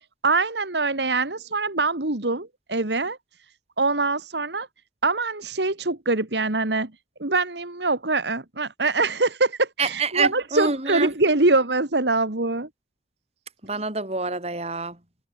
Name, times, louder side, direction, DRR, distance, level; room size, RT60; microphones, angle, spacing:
voice 1, 0.2-3.2 3.8-4.7 5.0-6.9 7.2-12.7, right 3 dB, 75° right, 2.2 m, -24 dB
voice 2, 9.8-11.1 13.6-15.0, right 4 dB, 35° right, 6.0 m, -26 dB
head